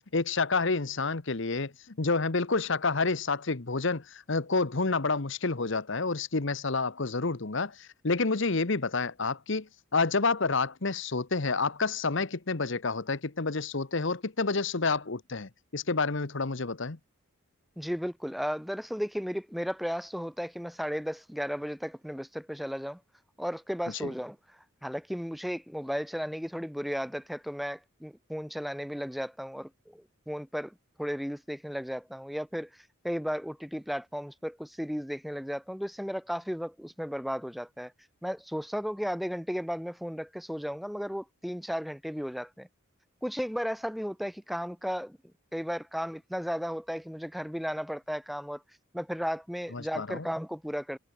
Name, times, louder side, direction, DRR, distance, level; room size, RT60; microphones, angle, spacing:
voice 1, 0.1-1.7 2.0-17.0 24.0-24.1 49.7-50.2, left 3 dB, 60° left, 1.1 m, -29 dB
voice 2, 17.8-23.0 23.4-37.9 38.2-42.7 43.2-45.2 45.5-48.6 48.9-51.0, equal, ahead, 0.7 m, -34 dB
head